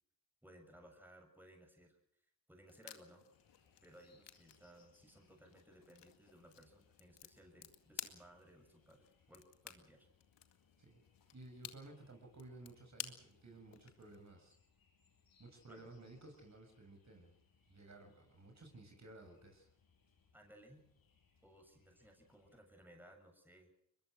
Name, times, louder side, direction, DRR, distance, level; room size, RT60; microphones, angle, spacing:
voice 1, 0.4-2.0 2.5-3.3 3.8-10.1 15.7-15.9 20.3-20.8 21.4-23.7, right 1 dB, 5° right, 3 dB, 7.1 m, -61 dB
sound 1, 2.7-14.3, left 11 dB, 75° left, 2.2 m, -55 dB
sound 2, 3.3-22.6, left 5 dB, 55° left, 6.7 m, -74 dB
voice 2, 11.3-14.5 15.4-17.3 17.7-19.7, right 2 dB, 40° right, 3 dB, 7.2 m, -56 dB
22.5 x 22.0 x 6.5 m, 0.74 s
supercardioid pair, 50°, 43 cm